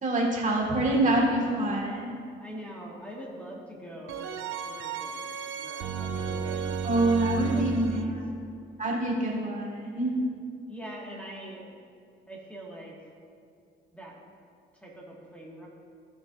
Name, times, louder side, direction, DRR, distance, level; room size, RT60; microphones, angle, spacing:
voice 1, 0.0-2.2 6.8-8.3 8.8-10.1, right 1 dB, 40° right, -2 dB, 1.8 m, -26 dB
sound 1, 0.6-1.4 4.1-8.0, right 6 dB, 85° right, 0.5 m, -33 dB
voice 2, 2.4-4.3 4.6-5.2 5.5-6.8 7.5-8.2 10.7-11.6 12.3-12.9 13.9-14.2 14.8-15.7, right 1 dB, 5° left, -3 dB, 1.7 m, -43 dB
15.0 x 6.0 x 2.5 m, 2.3 s
cardioid pair, 90°, 20 cm